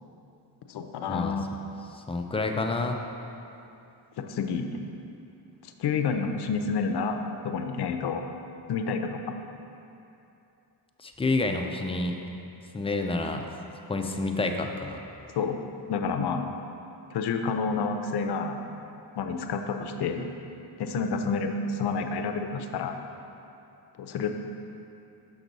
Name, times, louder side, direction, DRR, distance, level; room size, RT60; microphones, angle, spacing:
voice 1, 0.7-1.5 4.2-4.8 5.6-8.2 8.7-9.2 15.3-15.6 15.9-16.4 17.1-18.6 19.2-20.2 20.8-22.9 24.0-24.4, left 5 dB, 65° left, 6 dB, 0.6 m, -29 dB
voice 2, 1.9-3.0 11.0-12.2 12.7-13.5 13.9-15.0, left 2 dB, 15° left, 3 dB, 0.3 m, -29 dB
6.1 x 6.1 x 4.0 m, 2.8 s
cardioid pair, 125°, 43 cm